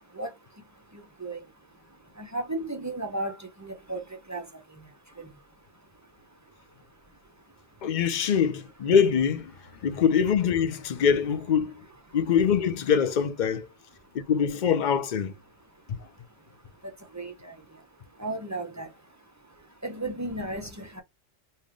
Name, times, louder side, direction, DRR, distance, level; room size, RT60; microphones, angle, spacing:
voice 1, 2.2-4.0 4.3-4.4 17.1-17.5 18.2-18.9 19.8-21.0, right 2 dB, 20° right, 0.5 m, -34 dB
voice 2, 7.8-9.5 9.8-11.7 12.1-13.7 14.1-15.3 15.9-16.0, left 7 dB, 50° left, 0.7 m, -24 dB
3.3 x 2.7 x 3.7 m
omnidirectional pair, 1.1 m